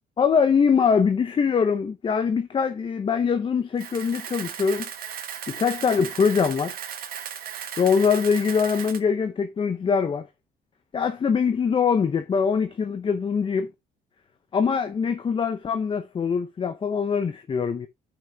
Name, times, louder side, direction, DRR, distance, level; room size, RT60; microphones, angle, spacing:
voice 1, 0.2-4.9 5.5-6.7 7.8-10.3 10.9-13.7 14.5-17.9, left 6 dB, 30° left, 0.7 m, -23 dB
Camera, 3.8-9.0, right 9 dB, 60° right, 1.2 m, -36 dB
15.5 x 5.9 x 2.3 m
cardioid pair, 110°, 17 cm